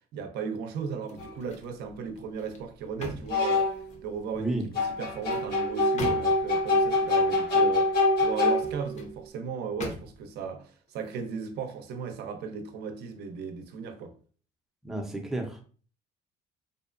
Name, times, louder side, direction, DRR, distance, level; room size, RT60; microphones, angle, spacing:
voice 1, 0.1-3.7 4.0-14.1, right 6 dB, 75° right, 0.4 m, -36 dB
sound 1, 1.0-1.8 2.2-4.1 4.9-6.6 8.4-9.1 9.8-10.4 10.9-11.1, left 2 dB, 45° left, 0.6 m, -42 dB
sound 2, 1.2-1.3 3.3-3.9 4.8-9.0, left 2 dB, 75° left, 1.4 m, -25 dB
voice 2, 14.8-15.6, right 2 dB, ahead, 0.5 m, -31 dB
2.6 x 2.1 x 2.4 m
cardioid pair, 110°, 17 cm